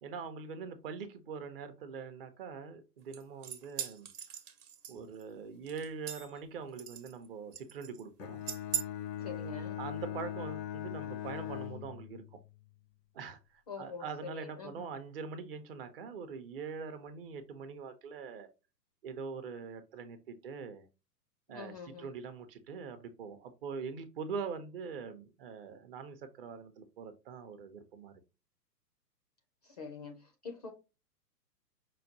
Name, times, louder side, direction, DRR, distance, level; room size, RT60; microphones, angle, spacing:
voice 1, 0.0-4.1 4.9-8.4 9.8-12.4 13.1-18.5 19.0-20.9 21.5-28.2, right 5 dB, 35° right, 0.6 m, -43 dB
sound 1, 3.1-5.2 5.7-6.4 6.8-7.3 7.5-8.0 8.5-8.8, right 9 dB, 65° right, 1.0 m, -39 dB
Bowed string instrument, 8.2-12.5, left 11 dB, 80° left, 0.6 m, -40 dB
voice 2, 9.2-9.8 13.7-14.9 21.5-22.1 29.6-30.7, left 4 dB, 25° left, 0.4 m, -45 dB
5.6 x 2.2 x 2.6 m
hypercardioid pair, 120°, 49 cm